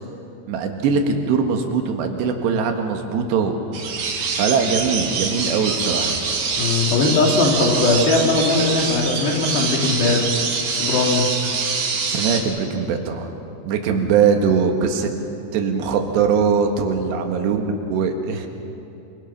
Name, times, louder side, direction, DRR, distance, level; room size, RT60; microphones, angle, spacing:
voice 1, 0.5-3.6 4.3-6.2 12.1-13.3 13.6-15.1 15.5-18.5, right 6 dB, 75° right, 4 dB, 3.8 m, -21 dB
sound 1, 3.7-12.4, right 5 dB, 55° right, 3.2 m, -24 dB
voice 2, 6.6-10.3 10.7-11.4 13.9-14.0, left 3 dB, 75° left, 0 dB, 5.0 m, -19 dB
26.5 x 25.0 x 6.0 m, 2.8 s
omnidirectional pair, 5.1 m